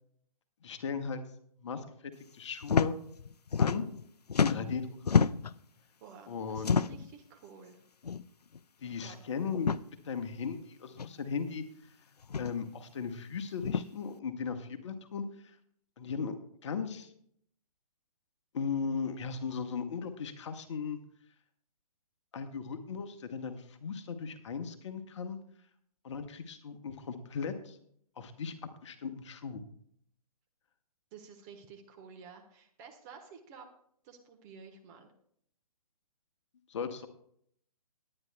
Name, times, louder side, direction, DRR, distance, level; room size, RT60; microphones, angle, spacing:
voice 1, 0.6-1.2 1.6-3.0 3.6-3.8 4.4-5.1 6.3-6.9 8.8-9.7 10.0-11.6 12.4-15.6 16.0-16.3 16.6-17.1 18.5-21.0 22.3-25.4 26.0-27.8 28.2-28.5 28.8-29.6 36.7-37.1, left 5 dB, 50° left, 8 dB, 1.1 m, -37 dB
sound 1, 2.6-2.9 3.2-4.0 4.3-5.6 6.6-7.1 8.0-8.2 8.5-8.6 9.5-9.8 11.0-11.1 12.2-12.5 13.6-13.8, left 6 dB, 85° left, 0.5 m, -28 dB
voice 2, 6.0-7.8 9.0-9.2 31.1-33.7 34.0-35.1, right 6 dB, 30° right, 4 dB, 1.3 m, -52 dB
19.0 x 9.9 x 2.3 m, 0.65 s
figure-of-eight pair, 130°, 20 cm